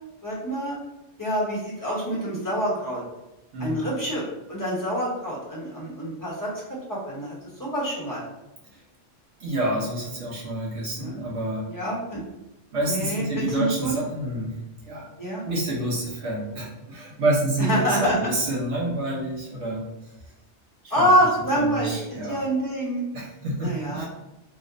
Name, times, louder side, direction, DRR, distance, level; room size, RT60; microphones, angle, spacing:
voice 1, 0.2-0.8 1.2-3.0 3.6-6.5 6.9-7.3 7.6-8.2 11.0-11.2 11.7-12.2 12.9-13.9 15.2-15.4 17.6-18.2 20.9-23.0 23.6-24.1, equal, 20° left, -7 dB, 0.9 m, -26 dB
voice 2, 9.4-11.7 12.7-14.6 14.8-15.1 15.4-19.9 20.8-21.3 21.5-22.4 23.1-24.1, right 1 dB, 65° right, -4 dB, 1.2 m, -28 dB
3.1 x 2.1 x 3.7 m, 0.94 s
omnidirectional pair, 1.3 m